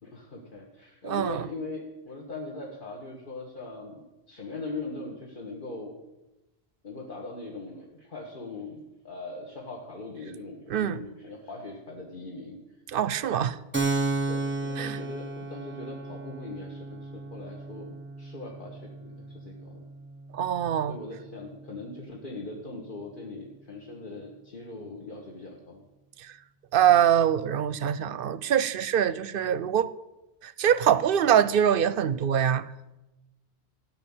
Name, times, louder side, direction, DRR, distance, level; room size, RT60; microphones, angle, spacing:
voice 1, 0.0-4.0 4.3-6.0 6.8-12.6 14.3-19.8 20.9-25.9, left 2 dB, 55° left, 1.6 m, -40 dB
voice 2, 1.0-1.5 10.7-11.1 12.9-13.6 14.8-15.0 20.3-21.0 26.7-29.9 30.4-32.6, right 9 dB, 65° right, 0.7 m, -24 dB
Keyboard (musical), 13.7-21.0, right 3 dB, 10° right, 1.1 m, -34 dB
13.5 x 6.0 x 8.8 m
omnidirectional pair, 1.1 m